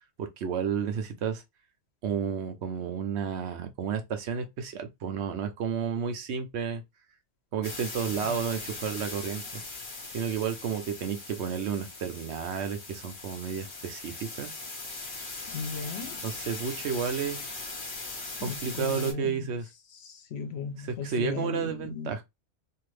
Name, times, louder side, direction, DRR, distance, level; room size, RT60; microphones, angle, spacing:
voice 1, 0.2-1.4 2.0-6.8 7.5-9.6 10.1-14.5 16.2-17.5 18.4-19.7 21.0-22.2, right 7 dB, 70° right, 0.9 m, -31 dB
sound 1, 7.6-19.1, left 3 dB, 50° left, 1.1 m, -40 dB
voice 2, 15.5-16.3 18.4-19.6 19.9-22.1, left 5 dB, 70° left, 0.9 m, -37 dB
2.6 x 2.5 x 3.2 m
omnidirectional pair, 1.2 m